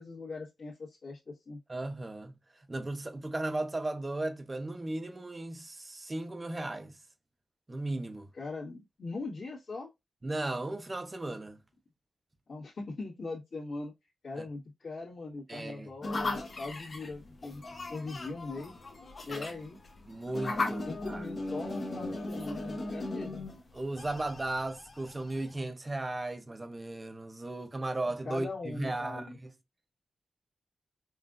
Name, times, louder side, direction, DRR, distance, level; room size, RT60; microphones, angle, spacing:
voice 1, 0.0-1.6 8.3-9.9 12.5-13.9 14.2-18.7 19.2-19.8 20.8-23.4 28.2-29.4, left 3 dB, 60° left, 1.4 m, -41 dB
voice 2, 1.7-7.0 7.7-8.3 10.2-11.6 14.4-14.5 15.5-15.9 19.3-19.5 20.1-21.2 23.7-29.5, right 2 dB, 20° right, 0.6 m, -36 dB
sound 1, 16.0-25.6, left 2 dB, 35° left, 0.8 m, -38 dB
5.4 x 2.5 x 2.4 m
wide cardioid pair, 170°, 0 cm